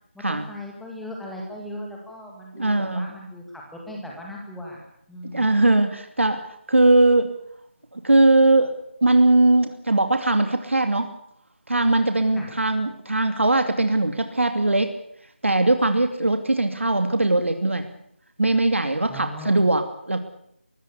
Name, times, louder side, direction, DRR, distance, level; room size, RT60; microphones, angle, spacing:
voice 1, 0.1-4.8 5.1-5.5 12.3-12.5 19.1-19.7, left 1 dB, ahead, -1 dB, 1.8 m, -38 dB
voice 2, 2.5-3.1 5.3-6.4 6.7-7.3 7.9-8.7 9.0-11.1 11.7-14.9 15.4-17.9 18.4-20.2, right 2 dB, 85° right, 7 dB, 2.7 m, -20 dB
23.5 x 16.0 x 8.3 m, 0.73 s
figure-of-eight pair, 175°, 7 cm